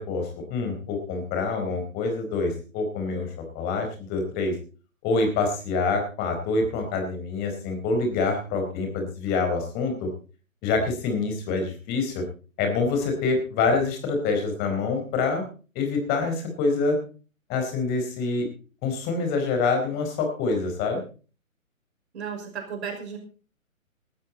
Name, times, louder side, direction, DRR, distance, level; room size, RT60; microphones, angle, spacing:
voice 1, 0.0-4.6 5.0-10.1 10.6-12.2 12.6-15.4 15.7-17.0 17.5-18.5 18.8-21.0, left 4 dB, 25° left, 4 dB, 4.6 m, -26 dB
voice 2, 22.1-23.2, right 6 dB, 50° right, 4 dB, 5.7 m, -34 dB
18.0 x 13.5 x 4.2 m, 0.38 s
figure-of-eight pair, 135°, 41 cm